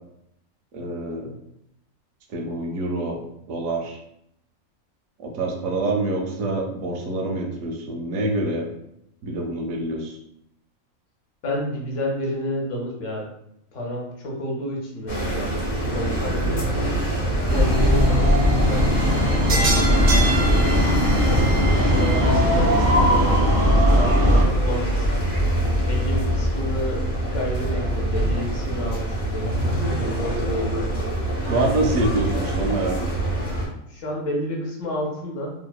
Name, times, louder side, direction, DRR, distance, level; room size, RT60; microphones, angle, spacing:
voice 1, 0.7-1.3 2.3-3.2 3.5-4.0 5.2-8.7 9.2-10.1 31.5-33.1, right 2 dB, 75° right, 1 dB, 0.9 m, -26 dB
voice 2, 11.4-13.3 13.7-16.6 17.4-25.2 25.9-31.0 33.9-35.5, equal, 70° left, -1 dB, 1.0 m, -31 dB
sound 1, 15.1-33.7, right 1 dB, 45° left, 0.6 m, -25 dB
sound 2, 17.5-24.4, equal, 50° right, 0.5 m, -19 dB
2.8 x 2.0 x 2.3 m, 0.76 s
omnidirectional pair, 1.4 m